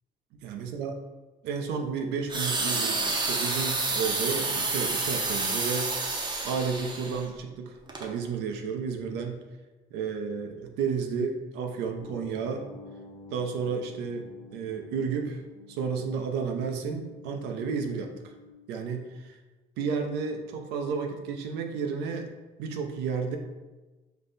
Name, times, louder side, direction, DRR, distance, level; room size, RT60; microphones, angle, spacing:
voice 1, 0.4-0.9 1.4-5.9 6.4-9.4 9.9-12.7 13.3-15.4 15.7-18.1 18.7-19.4 19.8-22.3 22.6-23.4, right 5 dB, 90° right, 5 dB, 0.6 m, -32 dB
sound 1, 2.3-7.2 7.9-8.1, right 3 dB, 25° right, 0.6 m, -29 dB
sound 2, 12.0-18.5, left 2 dB, 40° left, 0.6 m, -49 dB
5.3 x 2.2 x 3.9 m, 1.2 s
cardioid pair, 110°, 17 cm